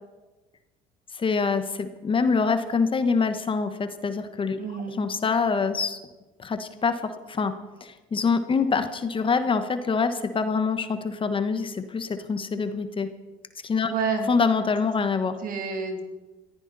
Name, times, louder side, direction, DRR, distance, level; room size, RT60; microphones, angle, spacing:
voice 1, 1.1-4.6 5.0-6.0 6.4-7.5 7.8-13.1 13.6-13.9 14.3-15.4, left 5 dB, 30° left, 9 dB, 1.3 m, -25 dB
voice 2, 4.5-5.0 13.8-14.3 15.4-16.0, right 5 dB, 55° right, 4 dB, 3.1 m, -29 dB
21.5 x 14.5 x 4.2 m, 1.2 s
hypercardioid pair, 75°, 18 cm